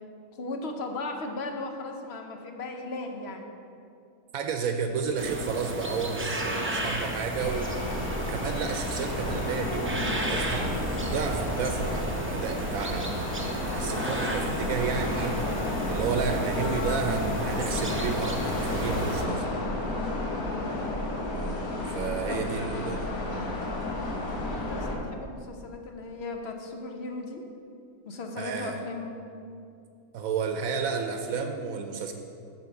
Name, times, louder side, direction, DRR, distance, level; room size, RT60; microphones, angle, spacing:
voice 1, 0.3-3.6 6.5-7.0 16.5-17.1 20.4-21.1 22.3-23.0 24.5-27.4 28.0-29.1, left 3 dB, 55° left, 4 dB, 1.0 m, -37 dB
voice 2, 4.3-7.8 8.2-10.7 11.1-15.4 15.9-19.4 21.3-23.5 28.4-28.7 30.1-32.1, right 5 dB, 80° right, 5 dB, 1.0 m, -32 dB
sound 1, 5.2-19.2, right 1 dB, 15° right, 0.4 m, -33 dB
sound 2, 7.3-25.0, left 2 dB, 85° left, 1.7 m, -32 dB
8.1 x 4.6 x 6.9 m, 2.4 s
omnidirectional pair, 1.5 m